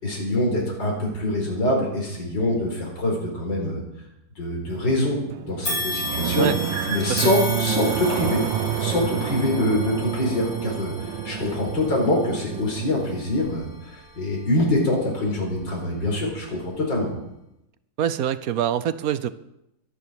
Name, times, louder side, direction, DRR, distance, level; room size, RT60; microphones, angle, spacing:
voice 1, 0.0-3.8 4.4-5.2 5.4-6.5 6.9-8.4 8.8-17.1, left 1 dB, 80° left, 0 dB, 5.0 m, -24 dB
sound 1, 4.7-13.2, right 9 dB, 90° right, 1.5 m, -29 dB
sound 2, 5.7-15.0 15.5-15.6 16.6-16.7, left 1 dB, 65° left, 6.4 m, -35 dB
voice 2, 18.0-19.3, right 10 dB, 65° right, 15 dB, 1.0 m, -24 dB
22.5 x 9.7 x 5.1 m, 0.86 s
omnidirectional pair, 1.9 m